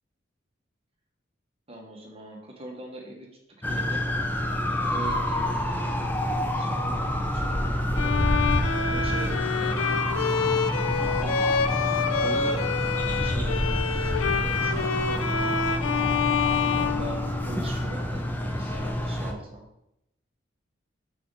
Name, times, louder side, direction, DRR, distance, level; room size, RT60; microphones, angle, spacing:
voice 1, 1.7-3.3 3.7-4.1 4.8-6.1 6.5-8.3 8.9-10.0 11.0-11.5 12.2-12.6 13.2-13.7 14.2-15.7 16.5-19.6, right 2 dB, 30° right, 0 dB, 1.1 m, -41 dB
sound 1, 3.6-19.3, left 1 dB, 10° left, 0.5 m, -28 dB
Bowed string instrument, 8.0-17.8, left 6 dB, 90° left, 0.5 m, -27 dB
6.7 x 4.0 x 3.7 m, 0.82 s
head